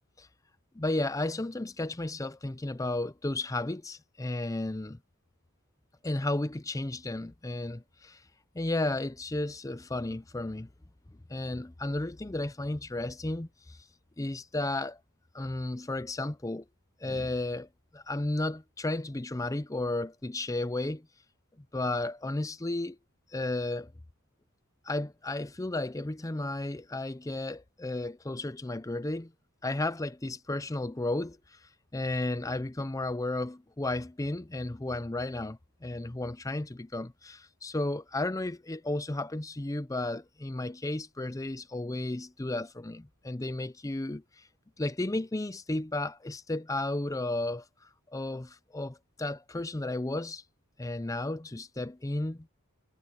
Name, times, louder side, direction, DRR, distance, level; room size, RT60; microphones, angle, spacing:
voice 1, 0.7-5.0 6.0-8.2 8.5-10.7 11.3-13.8 14.2-15.0 15.3-16.7 17.0-21.1 21.7-23.0 23.3-23.9 24.8-29.3 29.6-44.5 44.8-50.4 50.8-52.5, left 2 dB, 15° left, 0.6 m, -33 dB
head